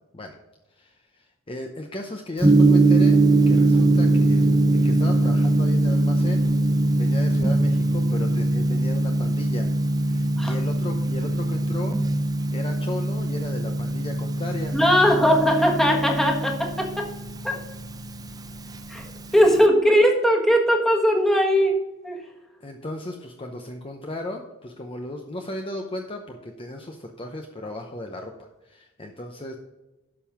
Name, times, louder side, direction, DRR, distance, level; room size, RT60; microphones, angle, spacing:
voice 1, 0.7-3.2 3.5-4.4 4.7-6.4 6.9-9.7 10.0-12.0 12.5-14.8 15.3-15.7 19.3-19.4 22.6-29.6, left 1 dB, 25° left, 3 dB, 0.8 m, -35 dB
Gong, 2.4-19.7, right 2 dB, 20° right, 0.7 m, -22 dB
voice 2, 14.7-17.1 17.4-17.6 18.9-19.0 19.3-21.8 22.0-22.2, equal, ahead, 1 dB, 1.5 m, -19 dB
12.0 x 5.4 x 6.0 m, 1.0 s
head